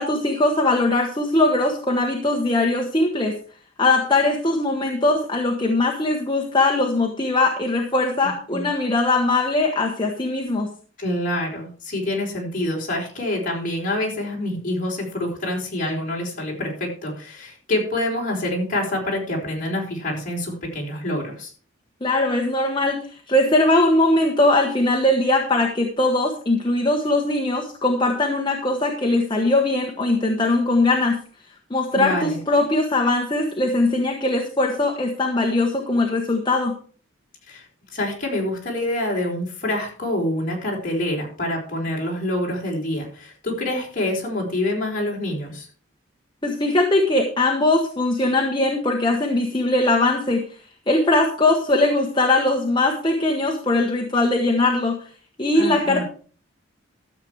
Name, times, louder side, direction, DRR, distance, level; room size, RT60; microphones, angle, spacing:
voice 1, 0.0-3.3 3.8-10.7 22.0-31.2 31.7-36.7 46.4-50.4 50.9-55.0 55.4-56.0, left 2 dB, 25° left, 1 dB, 1.2 m, -20 dB
voice 2, 8.2-8.7 11.0-21.5 31.9-32.4 37.5-37.6 37.9-45.7 55.5-56.0, left 1 dB, 40° left, -2 dB, 4.7 m, -26 dB
13.5 x 7.6 x 4.8 m, 0.42 s
head